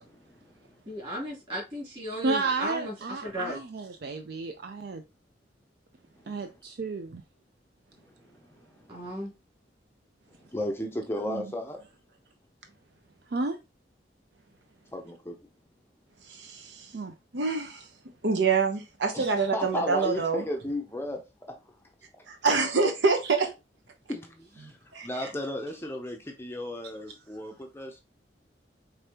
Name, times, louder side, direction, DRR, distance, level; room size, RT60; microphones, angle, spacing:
voice 1, 0.1-0.7 6.2-6.3 8.2-9.0 10.5-11.8 14.9-15.4 19.1-21.8 24.1-24.8 25.0-28.0, left 1 dB, 15° left, 0.5 m, -35 dB
voice 2, 0.9-3.6 8.9-9.3, equal, 30° right, 2.8 m, -35 dB
voice 3, 2.2-5.0 6.3-7.2 11.3-11.4 13.3-13.6 16.9-17.1 19.2-19.3 24.6-24.7, right 3 dB, 60° right, 0.4 m, -32 dB
voice 4, 16.2-17.0 17.3-17.9 18.2-20.4 22.3-23.5 24.9-25.3, right 4 dB, 85° right, 0.8 m, -26 dB
5.1 x 3.3 x 2.8 m
head